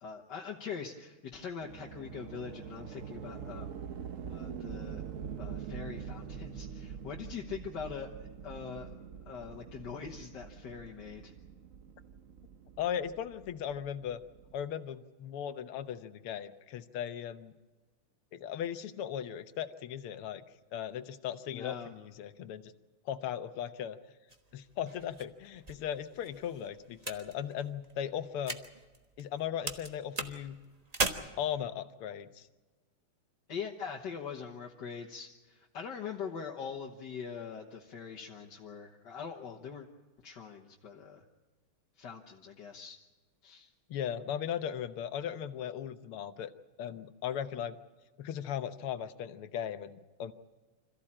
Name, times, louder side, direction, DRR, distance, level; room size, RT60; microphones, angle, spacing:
voice 1, 0.0-3.7 4.3-5.0 5.4-8.1 8.4-8.9 9.3-11.3 21.5-21.9 33.5-39.9 40.2-41.2 42.0-43.0 43.4-43.7, left 6 dB, 55° left, 0 dB, 1.8 m, -42 dB
sound 1, 1.6-14.6, right 7 dB, 55° right, 0.9 m, -44 dB
voice 2, 12.8-14.2 14.5-17.5 18.3-20.4 20.7-22.7 23.1-24.0 24.5-28.6 29.2-30.6 31.4-32.5 43.9-46.5 46.8-47.8 48.2-50.3, left 9 dB, 80° left, 11 dB, 1.9 m, -37 dB
sound 2, 24.3-29.4 29.7-31.1, right 3 dB, 25° right, 1.0 m, -39 dB
26.5 x 15.0 x 8.7 m, 1.3 s
omnidirectional pair, 2.4 m